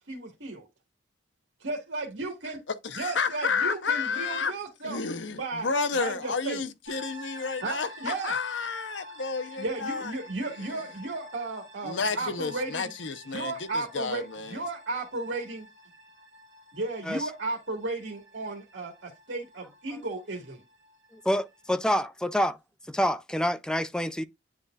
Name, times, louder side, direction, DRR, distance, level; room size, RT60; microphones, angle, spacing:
voice 1, 0.1-0.7 1.6-2.6 2.9-5.7 6.0-6.6 7.6-8.4 9.6-12.9 13.3-15.7 16.7-20.6, right 3 dB, 85° right, 1.7 m, -34 dB
voice 2, 2.8-4.5 4.8-10.1 10.6-10.8 11.8-14.6, left 5 dB, 85° left, 0.8 m, -31 dB
sound 1, 6.9-21.8, left 1 dB, 65° right, 2.0 m, -49 dB
voice 3, 21.1-22.6 22.9-24.2, equal, 5° left, 0.4 m, -27 dB
9.7 x 4.1 x 2.4 m
head